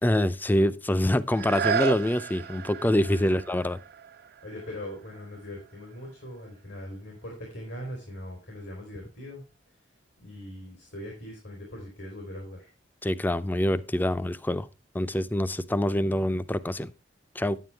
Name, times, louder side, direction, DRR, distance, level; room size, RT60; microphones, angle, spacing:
voice 1, 0.0-3.8 13.0-14.7 14.9-16.9 17.4-17.6, left 1 dB, 10° left, 0.4 m, -25 dB
sound 1, 1.3-6.9 7.5-7.6, right 7 dB, 60° right, 0.4 m, -34 dB
voice 2, 3.1-3.4 4.4-9.4 10.2-12.7, left 1 dB, 85° left, 3.6 m, -41 dB
9.6 x 9.3 x 3.4 m
head